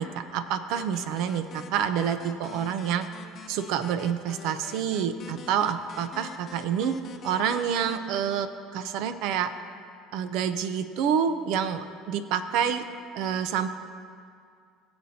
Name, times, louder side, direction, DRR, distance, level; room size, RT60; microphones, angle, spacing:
voice 1, 0.0-3.1 3.5-7.0 7.2-9.5 10.1-12.8 13.1-13.7, right 8 dB, 70° right, 11 dB, 0.6 m, -28 dB
sound 1, 0.7-8.0, left 6 dB, 45° left, 0.8 m, -46 dB
17.0 x 7.8 x 2.8 m, 2.3 s
supercardioid pair, 100°, 0 cm